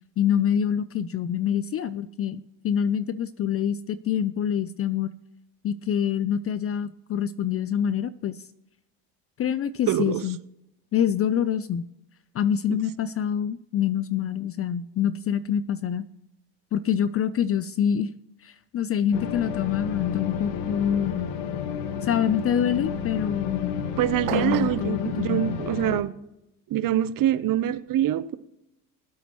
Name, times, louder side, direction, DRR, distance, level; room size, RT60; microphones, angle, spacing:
voice 1, 0.2-5.1 5.6-8.4 9.4-10.4 10.9-11.9 12.3-16.1 16.7-18.1 18.4-21.3 22.0-23.8 24.3-25.6, left 9 dB, 30° left, 0.4 m, -26 dB
voice 2, 9.9-10.2 12.7-12.8 24.0-26.1 26.7-28.4, right 12 dB, 40° right, 0.8 m, -25 dB
sound 1, 19.1-26.0, left 8 dB, 75° left, 1.4 m, -31 dB
sound 2, 24.3-24.9, right 20 dB, 80° right, 0.6 m, -30 dB
21.0 x 8.1 x 3.0 m
supercardioid pair, 90°, 49 cm